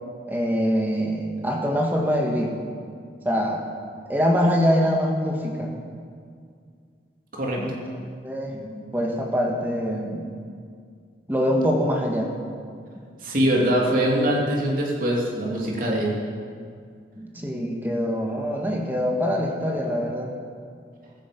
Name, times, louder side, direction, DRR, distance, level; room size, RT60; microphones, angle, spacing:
voice 1, 0.3-2.6 3.2-3.6 4.1-5.8 7.6-7.8 8.2-10.4 11.3-12.3 17.2-20.3, equal, 10° right, 0 dB, 1.9 m, -24 dB
voice 2, 13.2-16.1, equal, 50° right, -2 dB, 3.0 m, -23 dB
16.0 x 14.0 x 5.4 m, 2.2 s
head